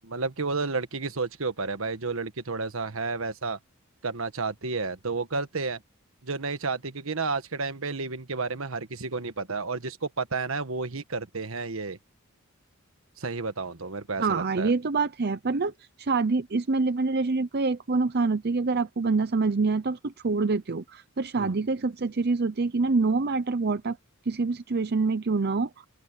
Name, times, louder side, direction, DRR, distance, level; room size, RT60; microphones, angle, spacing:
voice 1, 0.0-3.6 4.0-5.8 6.2-12.0 13.2-14.7 21.4-21.5, right 4 dB, 70° right, 1.4 m, -31 dB
voice 2, 14.2-15.7 16.0-24.0 24.3-25.7, right 4 dB, 50° right, 0.7 m, -26 dB
open air
head